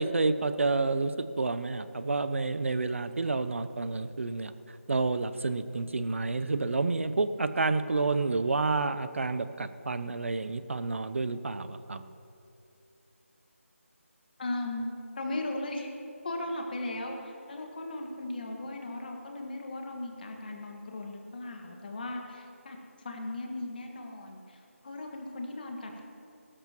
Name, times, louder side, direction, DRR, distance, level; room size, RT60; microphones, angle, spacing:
voice 1, 0.0-4.5 4.9-12.0, right 3 dB, 60° right, 12 dB, 0.6 m, -29 dB
voice 2, 14.4-14.9 15.2-15.9 16.2-26.0, left 2 dB, 40° left, 2 dB, 1.7 m, -37 dB
20.5 x 13.0 x 3.0 m, 2.7 s
figure-of-eight pair, 165°, 8 cm